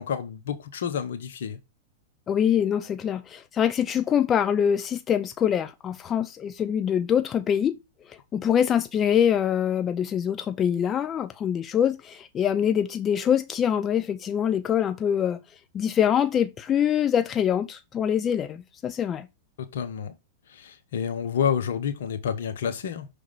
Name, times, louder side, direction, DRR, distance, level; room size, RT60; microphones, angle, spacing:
voice 1, 0.0-1.6 19.7-20.1 20.5-23.1, left 8 dB, 70° left, 1.1 m, -29 dB
voice 2, 2.3-7.8 8.1-15.4 15.7-19.3, left 9 dB, 30° left, 0.6 m, -24 dB
6.3 x 3.5 x 5.6 m
hypercardioid pair, 105°, 0 cm